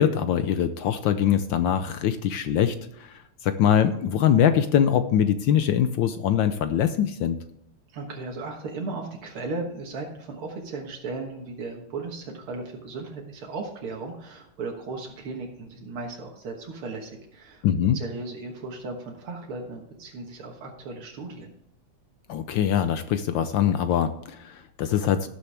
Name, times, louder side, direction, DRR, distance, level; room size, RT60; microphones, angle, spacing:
voice 1, 0.0-7.4 17.6-18.0 22.3-25.3, left 9 dB, 70° left, 10 dB, 1.3 m, -23 dB
voice 2, 7.9-17.6 17.9-21.5, right 3 dB, 85° right, 0 dB, 2.3 m, -36 dB
18.0 x 7.0 x 3.4 m, 0.74 s
omnidirectional pair, 2.3 m